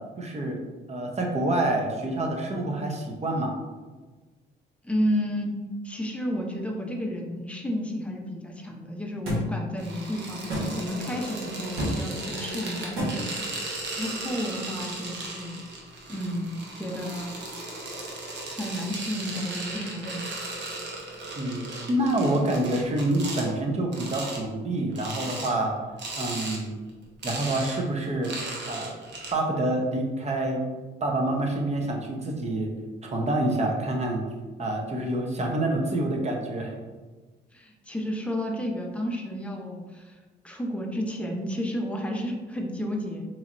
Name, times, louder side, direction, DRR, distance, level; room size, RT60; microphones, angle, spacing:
voice 1, 0.2-0.6 0.9-3.5 21.3-25.7 26.2-26.7 27.2-28.3 28.7-29.0 29.3-30.6 31.0-32.7 33.0-34.2 34.6-36.7, right 1 dB, 35° right, 1 dB, 0.8 m, -27 dB
voice 2, 4.8-13.6 13.9-15.6 16.1-17.5 18.5-20.5 21.0-21.2 37.5-40.1 40.4-43.3, equal, 5° left, 1 dB, 0.6 m, -32 dB
sound 1, 9.3-9.4 10.5-10.7 11.8-11.9 13.0-13.1, equal, 85° right, 1.4 m, -27 dB
sound 2, 9.8-23.5 23.9-24.4 24.9-25.5 26.0-26.6 26.9-29.3, right 2 dB, 60° right, 0.9 m, -36 dB
4.1 x 3.1 x 2.5 m, 1.3 s
cardioid pair, 90°, 20 cm